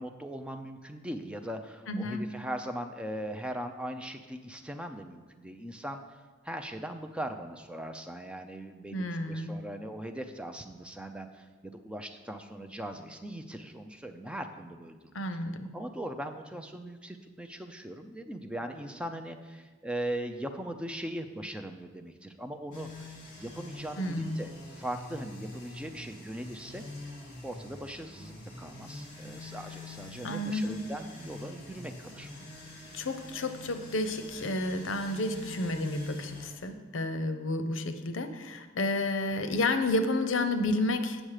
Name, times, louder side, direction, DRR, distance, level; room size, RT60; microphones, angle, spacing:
voice 1, 0.0-6.2 6.4-15.1 15.7-23.1 23.4-26.8 27.4-32.3, right 1 dB, 5° right, 6 dB, 0.4 m, -40 dB
voice 2, 1.9-2.2 8.9-9.5 15.1-15.7 24.0-24.4 30.2-30.8 32.9-41.2, left 2 dB, 80° left, 9 dB, 0.7 m, -31 dB
sound 1, 22.7-36.5, left 2 dB, 55° left, 1.9 m, -46 dB
8.9 x 6.3 x 4.9 m, 1.3 s
head